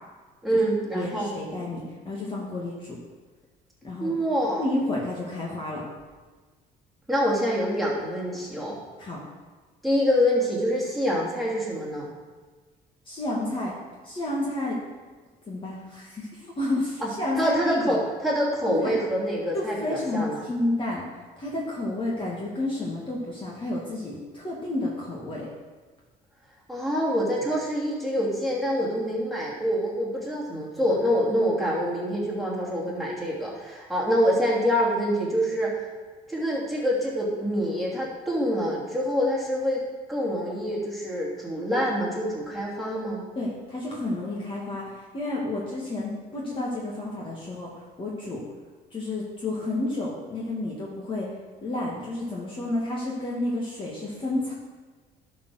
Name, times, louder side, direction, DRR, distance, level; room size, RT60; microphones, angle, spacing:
voice 1, 0.4-1.3 4.0-4.6 7.1-8.8 9.8-12.1 17.0-17.1 17.3-20.4 26.7-35.8 36.3-39.8 40.1-43.2, equal, ahead, -5 dB, 2.9 m, -26 dB
voice 2, 0.9-3.0 3.8-4.2 4.6-5.8 9.0-9.2 13.1-13.7 14.0-14.8 15.4-18.0 18.6-19.0 19.5-21.0 21.4-25.5 43.4-48.4 48.9-51.3 51.6-54.5, left 2 dB, 30° left, -4 dB, 1.9 m, -30 dB
11.0 x 4.6 x 6.3 m, 1.4 s
cardioid pair, 110°, 17 cm